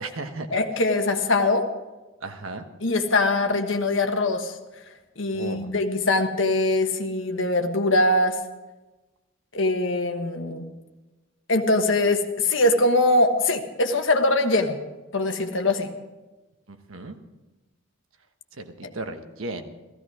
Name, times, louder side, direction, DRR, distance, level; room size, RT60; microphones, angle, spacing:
voice 1, 0.0-0.6 2.2-2.6 5.3-5.7 16.7-17.1 18.6-19.7, right 2 dB, 90° right, 7 dB, 1.3 m, -35 dB
voice 2, 0.5-1.7 2.8-4.6 5.2-8.4 9.5-10.7 11.5-14.8 15.1-15.9 18.8-18.9, left 2 dB, 70° left, 5 dB, 1.4 m, -22 dB
15.5 x 15.5 x 4.9 m, 1.1 s
head